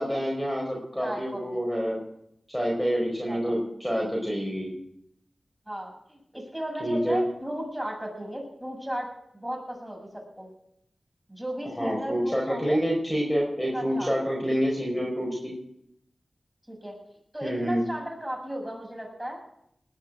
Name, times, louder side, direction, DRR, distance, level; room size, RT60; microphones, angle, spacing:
voice 1, 0.0-2.0 2.5-4.7 6.8-7.2 11.8-15.5 17.4-17.8, equal, 10° left, -2 dB, 4.9 m, -27 dB
voice 2, 1.0-1.6 3.3-3.4 5.7-9.1 9.3-10.5 11.3-12.8 13.7-14.1 16.7-17.0 17.3-19.4, equal, 10° right, 0 dB, 6.9 m, -35 dB
19.5 x 7.4 x 8.1 m, 0.76 s
cardioid pair, 45°, 0 cm